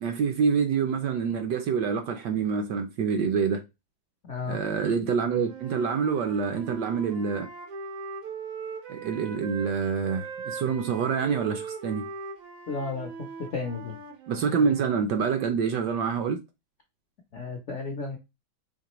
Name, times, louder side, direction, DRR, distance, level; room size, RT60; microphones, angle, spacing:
voice 1, 0.0-3.6 4.5-7.5 8.9-12.0 14.3-16.4, right 6 dB, 70° right, 1.0 m, -26 dB
voice 2, 4.2-4.6 12.7-13.1 13.5-14.0 17.3-18.2, left 4 dB, 75° left, 0.6 m, -33 dB
Wind instrument woodwind instrument, 5.3-9.7 10.0-14.9, right 4 dB, 85° right, 1.9 m, -40 dB
5.0 x 3.1 x 2.9 m
omnidirectional pair, 2.2 m